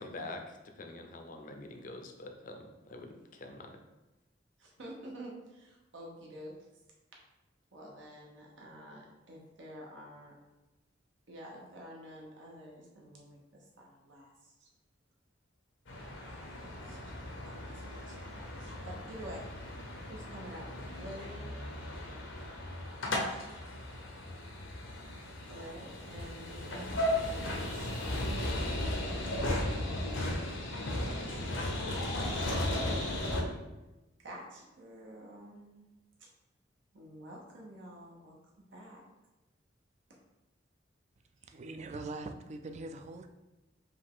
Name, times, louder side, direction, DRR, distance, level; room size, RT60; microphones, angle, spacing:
voice 1, 0.0-3.8, left 2 dB, 45° left, 0.5 m, -45 dB
voice 2, 4.6-6.5 7.7-10.3 11.3-14.7 16.3-17.0 17.4-19.5 20.1-21.7 25.5-28.2 29.3-30.2 31.0-32.8 34.2-35.9 36.2-36.3 36.9-39.0, equal, 80° right, 0.9 m, -49 dB
sound 1, 15.9-33.4, left 1 dB, 80° left, 0.8 m, -36 dB
voice 3, 41.4-43.3, right 2 dB, 35° right, 0.3 m, -42 dB
5.1 x 2.4 x 3.6 m
head